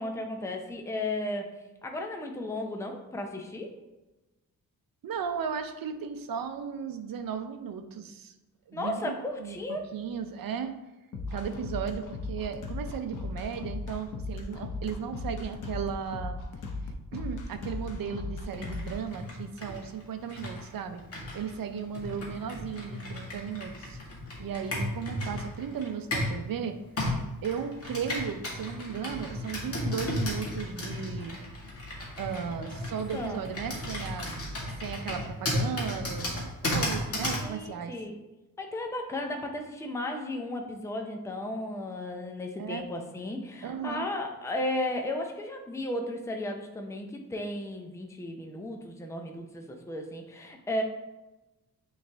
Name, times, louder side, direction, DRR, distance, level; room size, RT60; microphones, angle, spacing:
voice 1, 0.0-1.5 1.8-3.7 8.7-9.9 32.5-33.4 37.4-38.1 38.6-50.8, left 1 dB, 10° left, 3 dB, 0.6 m, -35 dB
voice 2, 5.0-8.3 8.7-10.8 11.3-16.4 17.1-21.0 21.3-24.0 24.4-26.8 27.4-31.4 32.2-34.3 34.7-37.9 42.6-42.8 43.6-44.0, right 7 dB, 70° right, 7 dB, 0.7 m, -35 dB
sound 1, 11.1-19.0, left 3 dB, 55° left, 0.8 m, -37 dB
Computer keyboard, 18.5-26.4 27.0-37.5, left 1 dB, 40° left, 1.7 m, -34 dB
9.0 x 3.3 x 3.4 m, 1.0 s
wide cardioid pair, 160°, 36 cm